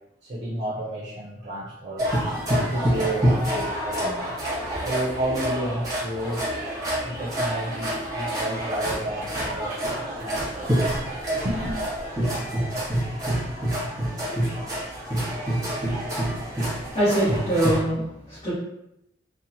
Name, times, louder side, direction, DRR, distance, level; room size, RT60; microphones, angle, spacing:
voice 1, 0.2-2.1 2.7-4.4 4.9-6.5 7.0-11.2 11.4-11.8, right 1 dB, 40° right, -5 dB, 0.6 m, -31 dB
sound 1, 2.0-17.8, right 1 dB, 20° right, 0.9 m, -27 dB
voice 2, 16.9-18.5, right 1 dB, 35° left, -14 dB, 1.1 m, -24 dB
2.8 x 2.1 x 2.7 m, 0.81 s
head